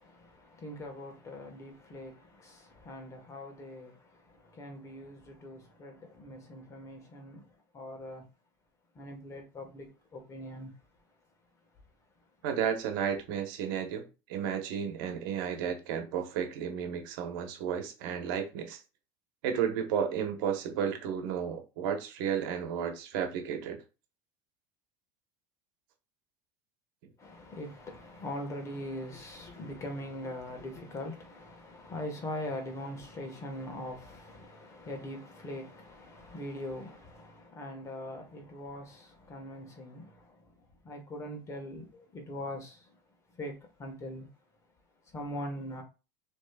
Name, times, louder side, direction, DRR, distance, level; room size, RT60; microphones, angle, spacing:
voice 1, 0.0-8.3 8.9-10.7 27.2-43.0 43.3-44.3 45.0-45.8, left 1 dB, 25° left, 1.5 m, -42 dB
voice 2, 12.4-18.8 19.4-23.8, right 8 dB, 75° right, 1.1 m, -33 dB
6.1 x 3.2 x 2.4 m
supercardioid pair, 135°, 11 cm